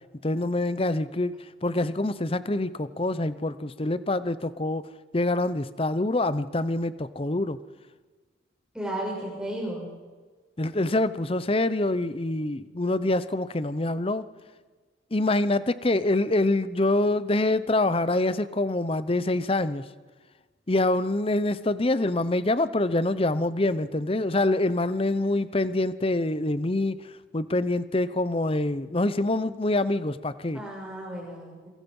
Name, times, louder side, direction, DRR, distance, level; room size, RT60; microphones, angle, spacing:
voice 1, 0.2-1.3 1.6-4.8 5.1-7.6 10.6-14.2 15.1-19.9 20.7-27.0 27.3-30.6, left 2 dB, 30° left, 14 dB, 0.7 m, -25 dB
voice 2, 8.7-9.9 30.5-31.7, right 1 dB, 5° right, -4 dB, 7.2 m, -34 dB
27.0 x 23.5 x 5.5 m, 1.4 s
head